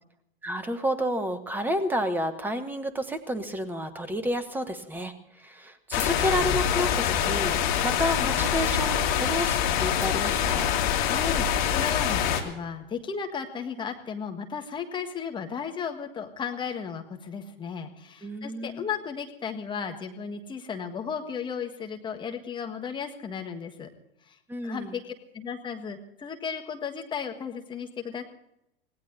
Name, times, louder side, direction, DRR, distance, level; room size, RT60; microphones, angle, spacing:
voice 1, 0.4-10.7 18.2-18.8 24.5-25.0, equal, 5° right, 11 dB, 1.1 m, -30 dB
sound 1, 5.9-12.4, left 9 dB, 50° left, 2.5 m, -25 dB
voice 2, 11.0-23.9 24.3-24.4 24.6-25.0 25.3-28.2, left 6 dB, 15° left, 4 dB, 1.6 m, -35 dB
25.5 x 18.0 x 2.7 m, 0.81 s
figure-of-eight pair, 95°, 32 cm